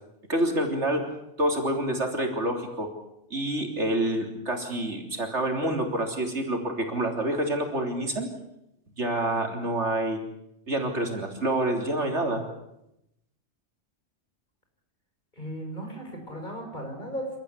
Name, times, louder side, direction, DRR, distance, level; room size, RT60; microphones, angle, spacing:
voice 1, 0.3-1.1 1.4-2.9 3.3-8.3 9.0-10.2 10.7-12.4, right 1 dB, 70° right, 3 dB, 3.8 m, -27 dB
voice 2, 15.4-17.4, equal, 40° left, 2 dB, 6.4 m, -36 dB
29.0 x 13.5 x 9.8 m, 0.84 s
omnidirectional pair, 1.2 m